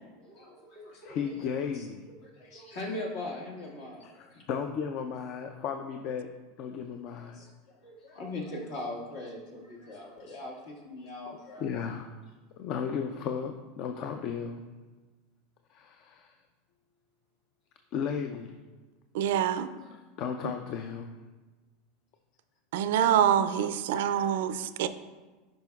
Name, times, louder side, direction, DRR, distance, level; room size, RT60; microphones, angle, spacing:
voice 1, 0.2-1.9 2.2-4.4 6.7-6.8 7.1-12.0, left 2 dB, 70° left, -2 dB, 1.7 m, -41 dB
voice 2, 0.9-2.0 4.0-4.1 4.5-6.3 6.6-7.4 11.6-12.1 12.6-14.7 15.7-16.3 17.9-18.5 19.8-21.2 24.5-24.6, left 7 dB, 55° left, 6 dB, 0.4 m, -35 dB
voice 3, 19.1-19.7 22.7-24.9, right 9 dB, 75° right, 12 dB, 0.3 m, -25 dB
10.0 x 5.2 x 2.3 m, 1.3 s
hypercardioid pair, 100°, 0 cm